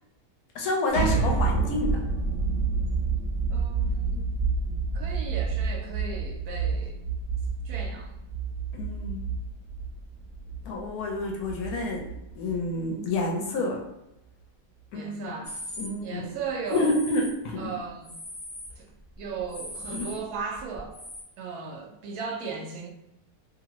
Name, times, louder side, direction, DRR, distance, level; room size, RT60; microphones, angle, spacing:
voice 1, 0.5-2.0 8.7-9.2 10.6-13.8 14.9-15.3 15.8-16.4 16.7-17.7 19.9-20.1, left 2 dB, 70° left, 0 dB, 1.0 m, -29 dB
sound 1, 0.9-12.7, right 4 dB, 45° right, 0.8 m, -29 dB
voice 2, 3.5-4.3 4.9-7.0 7.6-8.1 14.9-15.5 16.0-17.0 17.6-18.1 18.8-18.9 19.2-21.0 21.4-22.9, right 5 dB, 75° right, 1 dB, 1.1 m, -36 dB
sound 2, 15.4-15.9 16.7-17.3 17.8-18.8 19.1-21.2, left 1 dB, 35° left, 0.5 m, -40 dB
2.7 x 2.5 x 2.9 m, 0.88 s
omnidirectional pair, 1.8 m